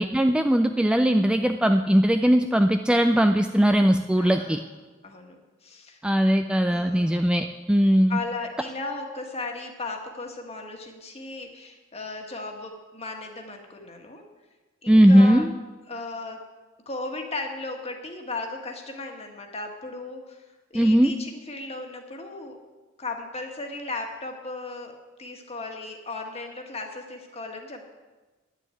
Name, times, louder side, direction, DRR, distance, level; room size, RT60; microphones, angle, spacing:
voice 1, 0.0-4.6 6.0-8.2 14.9-15.5 20.7-21.1, equal, 5° right, 6 dB, 0.3 m, -19 dB
voice 2, 4.2-6.0 6.7-7.2 8.1-14.2 14.8-15.5 15.9-16.5 16.8-20.4 20.7-22.6 23.0-27.9, left 3 dB, 30° left, 3 dB, 1.6 m, -36 dB
10.5 x 7.3 x 9.1 m, 1.2 s
head